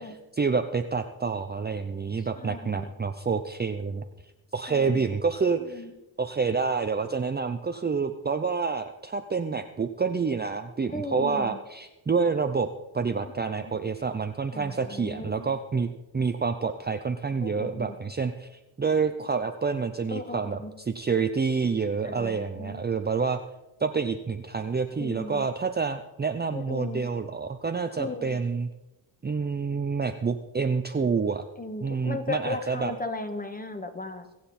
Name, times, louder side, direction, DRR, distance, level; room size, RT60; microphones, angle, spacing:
voice 1, 0.0-4.0 4.5-5.9 6.2-23.4 23.8-28.7 29.2-31.4 31.8-32.9, right 5 dB, 20° right, 7 dB, 0.6 m, -28 dB
voice 2, 2.4-2.9 4.7-5.1 5.7-5.9 10.9-11.6 13.5-13.7 14.5-15.5 17.4-17.9 20.1-20.7 22.0-22.8 25.0-25.5 26.5-27.0 28.0-28.4 31.6-34.3, left 3 dB, 20° left, 7 dB, 1.5 m, -36 dB
22.5 x 7.7 x 4.3 m, 1.0 s
cardioid pair, 90°, 47 cm